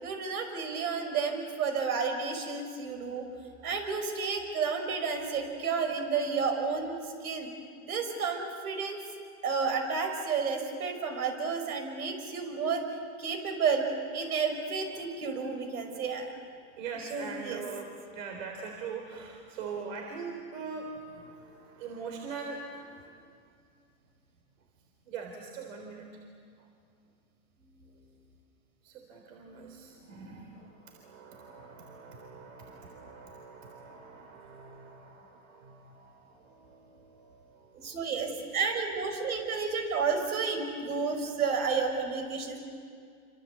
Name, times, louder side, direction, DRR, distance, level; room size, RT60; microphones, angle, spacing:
voice 1, 0.0-3.3 3.6-7.5 7.8-9.0 9.4-12.8 13.2-13.9 14.1-16.3 17.1-17.6 37.7-42.6, right 5 dB, 75° right, 5 dB, 5.8 m, -31 dB
voice 2, 16.8-23.2 25.1-26.2 26.6-26.7 28.8-38.1, right 5 dB, 60° right, 2 dB, 3.9 m, -43 dB
27.5 x 26.0 x 8.3 m, 2.3 s
hypercardioid pair, 135°, 44 cm